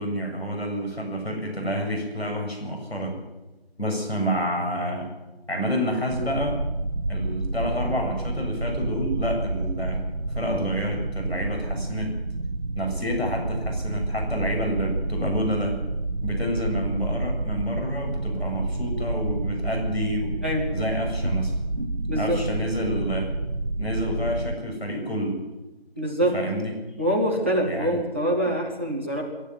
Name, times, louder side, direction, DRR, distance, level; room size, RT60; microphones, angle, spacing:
voice 1, 0.0-3.2 3.8-5.1 5.5-6.6 7.1-10.0 10.3-12.1 12.8-15.8 16.2-20.3 20.7-21.5 22.2-23.3 23.8-25.4 26.3-26.7 27.6-28.0, equal, 75° left, 1 dB, 7.4 m, -28 dB
sound 1, 6.1-24.6, right 2 dB, 50° right, 1.1 m, -29 dB
voice 2, 21.8-22.5 26.0-26.4 27.0-29.2, equal, 10° right, -2 dB, 1.4 m, -25 dB
24.5 x 12.0 x 9.6 m, 1.1 s
figure-of-eight pair, 170°, 32 cm